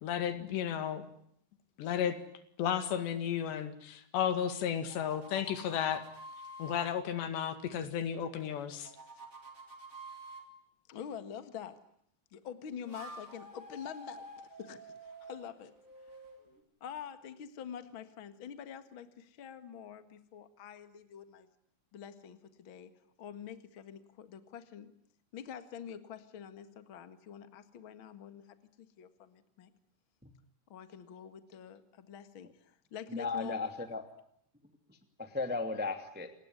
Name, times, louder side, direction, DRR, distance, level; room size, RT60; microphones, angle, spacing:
voice 1, 0.0-1.0 1.8-2.2 2.6-6.0 6.6-8.9, left 9 dB, 80° left, 10 dB, 4.3 m, -33 dB
sound 1, 4.7-6.9 8.4-10.5 12.6-16.6, right 1 dB, 20° right, 3.9 m, -50 dB
voice 2, 10.9-11.8 12.3-14.3 14.6-15.7 16.8-21.5 21.9-22.9 23.2-24.9 25.3-29.7 30.7-33.6, left 8 dB, 50° left, 11 dB, 1.5 m, -46 dB
voice 3, 33.1-34.0 34.9-36.3, left 3 dB, 5° right, 7 dB, 1.4 m, -36 dB
27.5 x 20.0 x 9.7 m, 0.70 s
omnidirectional pair, 4.9 m